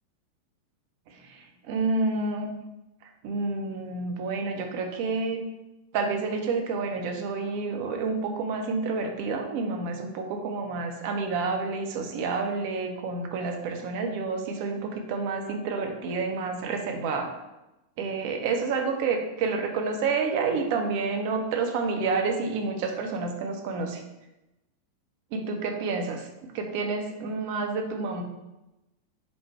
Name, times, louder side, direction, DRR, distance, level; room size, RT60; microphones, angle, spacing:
voice 1, 1.1-2.5 3.2-5.4 5.9-17.3 18.0-24.0 25.3-28.2, right 4 dB, 50° right, 4 dB, 0.6 m, -29 dB
4.1 x 2.1 x 4.4 m, 0.96 s
figure-of-eight pair, 90°, 0 cm